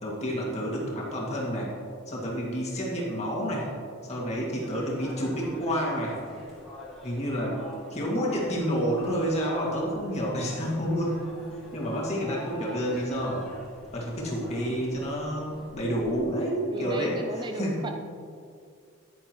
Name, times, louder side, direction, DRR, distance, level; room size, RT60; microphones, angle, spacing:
voice 1, 0.0-1.7 2.1-3.7 4.0-6.2 7.0-7.6 7.9-11.3 11.7-13.4 13.9-17.8, equal, 30° left, -4 dB, 2.1 m, -29 dB
sound 1, 4.6-16.1, left 1 dB, ahead, 2.3 m, -47 dB
voice 2, 16.7-17.9, right 2 dB, 20° right, 5 dB, 0.3 m, -35 dB
10.5 x 9.7 x 3.1 m, 2.3 s
head